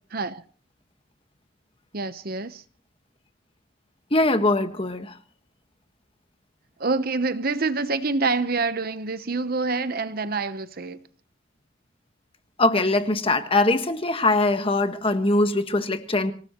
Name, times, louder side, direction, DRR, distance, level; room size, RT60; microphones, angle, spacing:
voice 1, 0.1-0.4 1.9-2.6 6.8-11.0, right 3 dB, 50° right, 1.0 m, -26 dB
voice 2, 4.1-5.1 12.6-16.3, left 2 dB, 30° left, 1.5 m, -22 dB
26.0 x 18.0 x 3.1 m
head